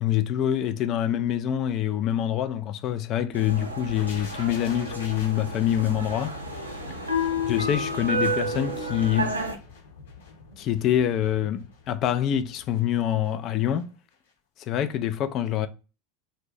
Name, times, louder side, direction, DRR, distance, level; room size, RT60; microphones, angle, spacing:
voice 1, 0.0-6.4 7.5-9.4 10.6-13.9 14.7-15.7, left 11 dB, 45° left, 0.4 m, -25 dB
sound 1, 3.3-9.6, equal, 90° right, 0.5 m, -30 dB
sound 2, 4.0-13.8 14.1-14.3, left 4 dB, 75° left, 0.9 m, -46 dB
2.5 x 2.1 x 4.0 m
figure-of-eight pair, 80°, 0 cm